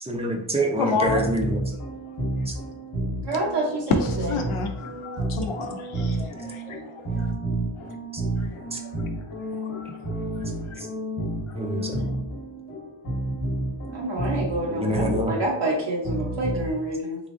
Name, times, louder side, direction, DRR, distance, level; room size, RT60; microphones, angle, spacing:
voice 1, 0.0-1.6 2.5-2.6 8.1-8.2 8.7-8.8 10.8-10.9 11.5-12.0 14.7-15.4, right 1 dB, 15° right, 0.5 m, -26 dB
voice 2, 0.8-1.2 3.9-7.3 7.8-7.9 8.4-10.4 10.7-10.8 11.5-11.6 11.9-12.1, left 3 dB, 90° left, 0.7 m, -31 dB
sound 1, 0.8-16.7, right 1 dB, 50° left, 1.0 m, -31 dB
voice 3, 3.2-3.8 13.9-17.2, right 1 dB, 60° right, 0.8 m, -27 dB
3.6 x 3.1 x 2.6 m
wide cardioid pair, 140°, 48 cm